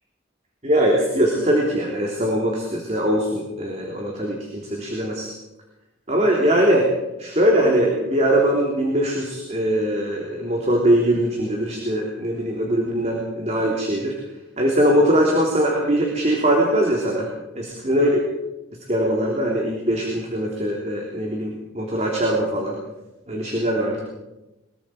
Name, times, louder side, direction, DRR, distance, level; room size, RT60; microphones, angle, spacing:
voice 1, 0.6-5.3 6.1-6.9 7.2-14.1 14.6-17.3 17.5-18.2 18.9-22.7 23.3-24.0, right 1 dB, 35° right, -1 dB, 3.5 m, -21 dB
23.0 x 22.5 x 5.1 m, 0.97 s
head